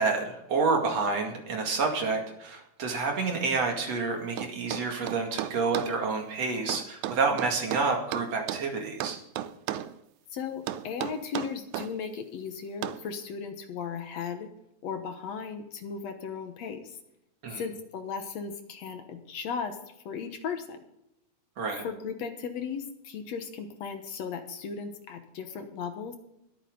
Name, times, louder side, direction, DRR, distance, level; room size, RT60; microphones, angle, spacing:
voice 1, 0.0-9.2 17.4-17.6 21.6-21.8, right 4 dB, 60° right, 2 dB, 3.3 m, -29 dB
sound 1, 4.4-5.9 6.7-8.7 9.0-9.9 10.7-11.9 12.8-13.1, right 12 dB, 80° right, 2.1 m, -34 dB
voice 2, 10.3-14.5 14.8-17.0 17.6-19.8 20.1-20.8 21.8-26.2, left 6 dB, 65° left, 7 dB, 2.3 m, -36 dB
21.0 x 9.1 x 3.9 m, 0.81 s
omnidirectional pair, 3.4 m